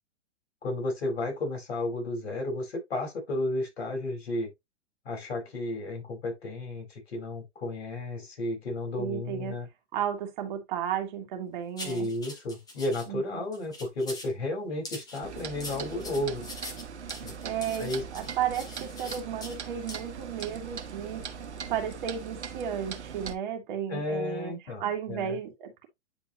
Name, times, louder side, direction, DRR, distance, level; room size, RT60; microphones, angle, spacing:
voice 1, 0.6-4.5 5.0-9.7 11.8-16.4 17.2-17.4 17.8-18.0 23.9-25.3, left 2 dB, 60° left, 4.6 m, -33 dB
voice 2, 9.0-9.6 9.9-12.1 13.1-13.5 17.4-21.2 21.7-25.9, right 9 dB, 40° right, 2.1 m, -33 dB
sound 1, 11.8-13.1 13.5-14.3 14.8-19.6 19.9-20.0 20.4-20.5, left 2 dB, 10° left, 1.8 m, -43 dB
Clock, 15.2-23.3, right 6 dB, 65° right, 1.3 m, -40 dB
9.9 x 4.4 x 2.9 m
figure-of-eight pair, 110°, 36 cm